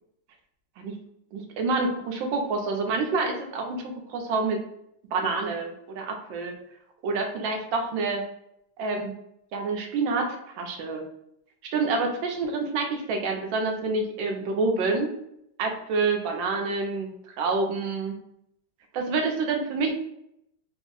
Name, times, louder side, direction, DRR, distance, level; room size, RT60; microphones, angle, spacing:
voice 1, 1.3-4.6 5.1-6.5 7.0-8.2 8.8-9.1 9.5-11.0 11.7-15.1 15.6-18.2 18.9-19.9, right 3 dB, 75° right, 3 dB, 1.3 m, -27 dB
3.4 x 2.1 x 3.7 m, 0.77 s
omnidirectional pair, 2.2 m